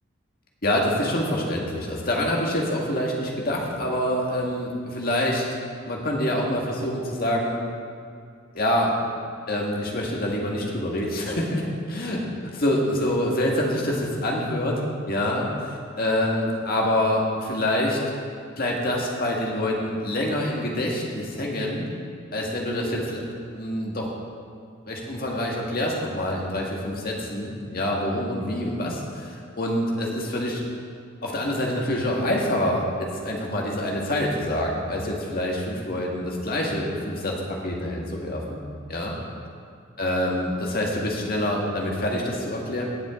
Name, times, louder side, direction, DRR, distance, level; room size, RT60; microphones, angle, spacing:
voice 1, 0.6-5.4 5.9-7.6 8.5-8.9 9.5-12.2 12.5-14.8 15.1-18.0 18.6-21.8 22.3-23.2 23.5-24.1 24.9-30.6 31.2-38.6 38.9-39.2 40.0-42.8, left 1 dB, 50° left, -2 dB, 1.8 m, -26 dB
18.0 x 7.6 x 3.7 m, 2.3 s
head